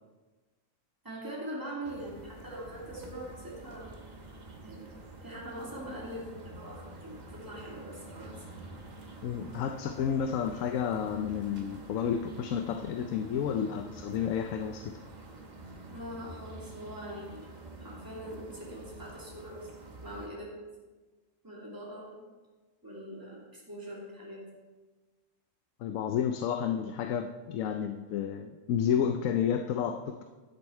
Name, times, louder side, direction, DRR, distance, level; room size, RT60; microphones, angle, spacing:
voice 1, 1.0-3.9 4.6-4.9 5.2-8.4 15.9-17.5 17.8-19.7 20.0-20.6 21.4-22.2 22.8-24.5, right 1 dB, 15° right, -6 dB, 2.8 m, -42 dB
sound 1, 1.8-20.3, right 2 dB, 35° right, 1.2 m, -47 dB
voice 2, 9.2-15.0 25.8-30.2, left 8 dB, 85° left, 7 dB, 1.0 m, -31 dB
11.5 x 7.9 x 4.4 m, 1.3 s
omnidirectional pair, 1.4 m